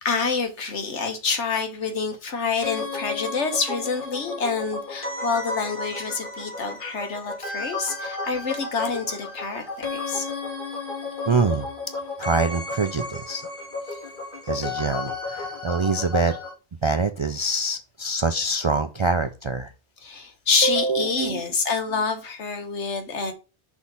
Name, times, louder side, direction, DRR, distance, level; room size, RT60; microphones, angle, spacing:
voice 1, 0.0-10.3 13.9-14.0 20.0-23.3, left 5 dB, 85° left, 1.6 m, -27 dB
sound 1, 2.6-16.5, left 3 dB, 50° left, 2.3 m, -33 dB
voice 2, 11.3-11.7 12.2-13.4 14.4-16.4 16.8-19.7 20.6-21.4, right 3 dB, 50° right, 0.3 m, -24 dB
6.3 x 3.6 x 5.6 m
omnidirectional pair, 1.1 m